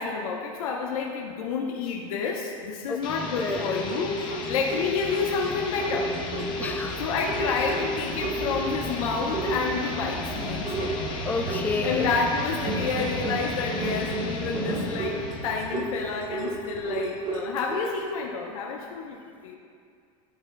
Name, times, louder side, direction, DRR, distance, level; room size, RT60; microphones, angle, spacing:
voice 1, 0.0-6.2 7.0-11.0 11.8-19.6, left 5 dB, 85° left, -1 dB, 0.7 m, -29 dB
sound 1, 3.0-15.9, left 4 dB, 25° left, 0.8 m, -37 dB
sound 2, 3.2-9.0 9.3-10.1 10.6-12.2 12.6-18.0, right 1 dB, 25° right, 0.7 m, -33 dB
voice 2, 3.3-3.7 6.6-7.0 11.2-12.1 16.0-16.1, left 4 dB, 10° left, 4 dB, 0.4 m, -30 dB
sound 3, 3.3-17.8, right 1 dB, 75° right, 1.5 m, -37 dB
11.5 x 4.6 x 2.2 m, 2.3 s
supercardioid pair, 145°, 17 cm